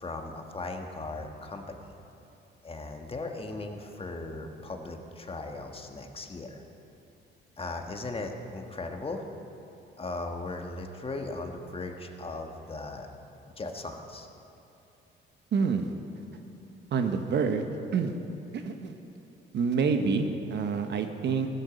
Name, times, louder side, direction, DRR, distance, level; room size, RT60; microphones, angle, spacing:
voice 1, 0.0-1.9 2.6-6.6 7.6-9.2 10.0-13.1 13.6-14.3, left 2 dB, 30° left, 4 dB, 1.4 m, -37 dB
voice 2, 15.5-15.9 16.9-17.7 17.9-18.1 18.5-18.9 19.5-21.5, right 5 dB, 60° right, 6 dB, 1.1 m, -27 dB
15.0 x 13.5 x 5.1 m, 2.8 s
cardioid pair, 90°, 20 cm